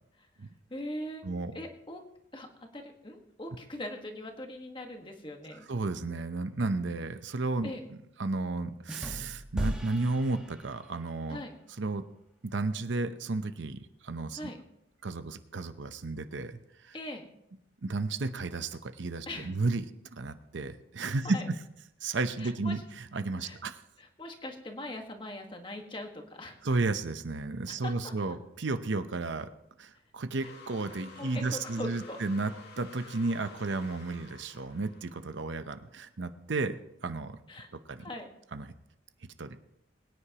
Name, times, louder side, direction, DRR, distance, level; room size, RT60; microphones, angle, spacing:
voice 1, 0.7-1.2 1.5-2.0 2.3-2.5 2.7-5.7 7.6-7.8 11.3-11.5 14.3-14.6 16.9-17.2 19.3-19.5 21.2-21.5 22.4-22.8 23.4-23.6 24.0-26.6 27.7-28.1 30.4-30.5 31.2-32.2 37.5-37.7 38.0-38.3, left 1 dB, 25° left, 3 dB, 1.5 m, -41 dB
voice 2, 5.5-11.4 11.8-12.0 12.4-14.4 15.0-16.9 17.8-19.8 20.1-21.4 22.0-23.8 26.6-29.5 29.8-37.4 37.9-38.1 38.5-38.7 39.4-39.6, right 3 dB, 70° right, 10 dB, 0.7 m, -33 dB
sound 1, 8.9-11.1, equal, 5° right, 1.2 m, -37 dB
sound 2, 30.4-35.7, left 3 dB, 55° left, 2.1 m, -51 dB
22.5 x 9.9 x 2.9 m, 0.79 s
head